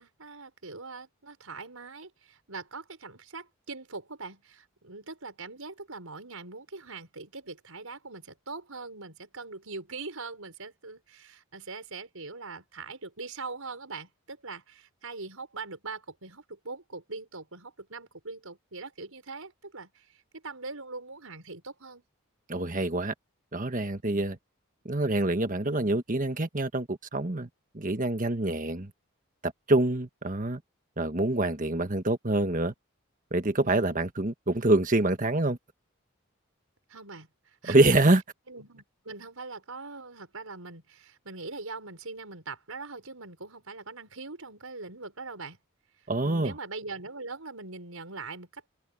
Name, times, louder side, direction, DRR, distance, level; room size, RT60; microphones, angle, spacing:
voice 1, 0.0-22.0 24.0-24.2 33.6-34.0 36.9-38.0 38.5-45.6 46.2-48.7, right 3 dB, 85° right, 5.6 m, -42 dB
voice 2, 22.5-23.1 23.5-24.3 24.8-27.5 27.7-28.9 29.4-30.6 31.0-32.7 33.3-35.6 37.7-38.2 46.1-46.5, right 2 dB, 40° right, 1.6 m, -26 dB
head